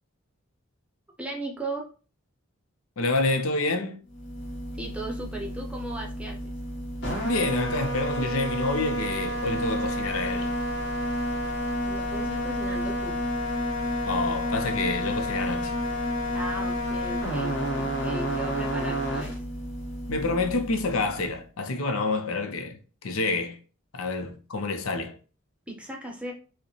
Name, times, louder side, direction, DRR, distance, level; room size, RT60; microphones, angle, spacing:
voice 1, 1.2-1.8 4.8-6.4 11.8-13.2 16.3-19.4 25.7-26.3, right 2 dB, 5° right, 0.7 m, -36 dB
voice 2, 3.0-4.0 7.2-10.5 14.0-15.7 20.1-23.6 23.9-25.2, left 3 dB, 85° left, 0.6 m, -28 dB
sound 1, 4.1-21.3, equal, 55° left, 1.4 m, -30 dB
4.7 x 2.1 x 3.0 m
head